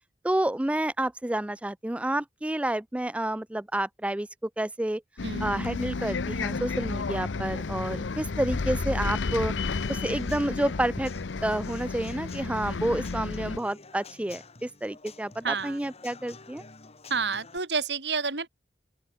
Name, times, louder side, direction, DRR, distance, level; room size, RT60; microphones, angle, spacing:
voice 1, 0.2-5.0 5.4-9.5 9.9-11.1 11.4-16.6, right 1 dB, 5° right, 0.4 m, -29 dB
Bus, 5.2-13.6, left 4 dB, 85° left, 0.7 m, -32 dB
voice 2, 5.2-5.8 15.4-15.8 17.1-18.5, right 4 dB, 65° right, 3.9 m, -30 dB
Human voice / Acoustic guitar / Drum, 9.6-17.6, left 4 dB, 35° left, 2.4 m, -50 dB
open air
head